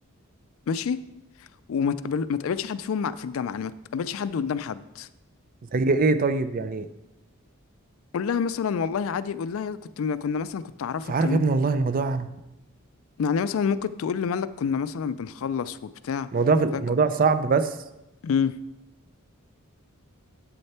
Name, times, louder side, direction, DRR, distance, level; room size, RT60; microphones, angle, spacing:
voice 1, 0.7-1.0 1.7-5.1 8.1-11.5 13.2-16.3 16.7-16.8 18.2-18.5, left 6 dB, 65° left, 15 dB, 0.3 m, -28 dB
voice 2, 5.7-6.9 11.1-12.3 16.3-17.8, right 4 dB, 40° right, 11 dB, 0.4 m, -22 dB
7.8 x 6.6 x 4.3 m, 0.94 s
head